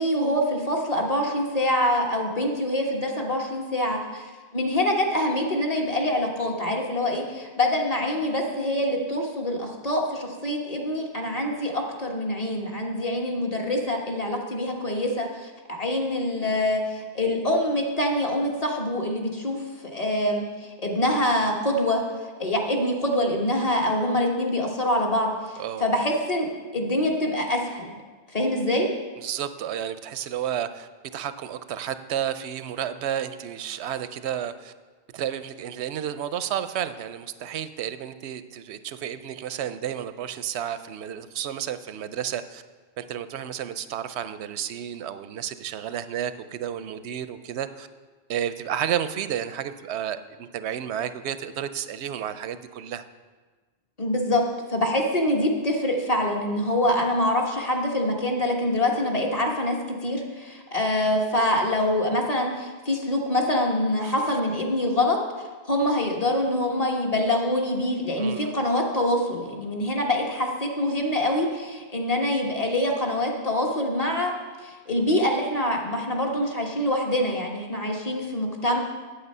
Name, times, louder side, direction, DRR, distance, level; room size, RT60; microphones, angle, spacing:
voice 1, 0.0-22.0 22.4-26.5 26.7-27.9 28.3-28.9 54.0-65.2 65.7-74.3 74.6-78.8, left 1 dB, 35° left, 0 dB, 1.3 m, -25 dB
voice 2, 29.2-34.7 35.1-42.6 43.0-47.9 48.3-53.0 64.0-64.1 68.2-68.5, right 10 dB, 85° right, 12 dB, 0.8 m, -31 dB
8.8 x 8.2 x 5.4 m, 1.4 s
omnidirectional pair, 1.1 m